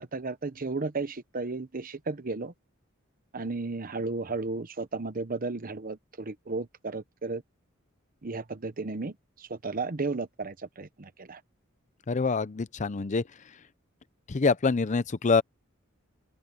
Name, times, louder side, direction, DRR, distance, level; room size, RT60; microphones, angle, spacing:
voice 1, 0.0-2.5 3.3-7.4 8.2-11.4, right 3 dB, 45° right, 0.9 m, -34 dB
voice 2, 12.1-13.2 14.3-15.4, left 4 dB, 35° left, 0.6 m, -25 dB
head